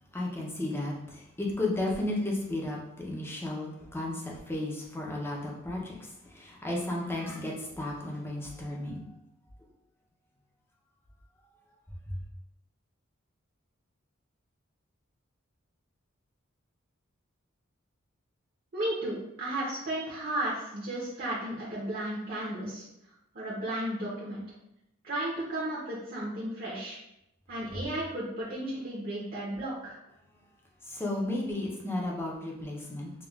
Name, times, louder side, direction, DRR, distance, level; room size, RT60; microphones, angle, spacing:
voice 1, 0.1-6.0 6.3-9.1 12.1-12.2 30.9-33.1, left 1 dB, 10° left, -2 dB, 0.6 m, -33 dB
voice 2, 18.7-22.8 23.3-24.4 25.0-27.0 27.5-30.0, right 1 dB, 45° right, -6 dB, 0.8 m, -34 dB
5.0 x 2.3 x 2.4 m, 0.85 s
head